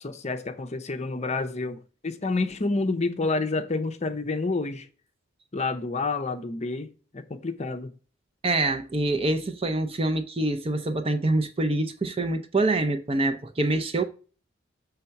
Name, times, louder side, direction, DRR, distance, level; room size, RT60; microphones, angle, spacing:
voice 1, 0.0-4.9 5.5-7.9, left 3 dB, 30° left, 0.6 m, -29 dB
voice 2, 8.4-14.0, right 2 dB, 25° right, 0.5 m, -25 dB
6.6 x 3.4 x 5.7 m
head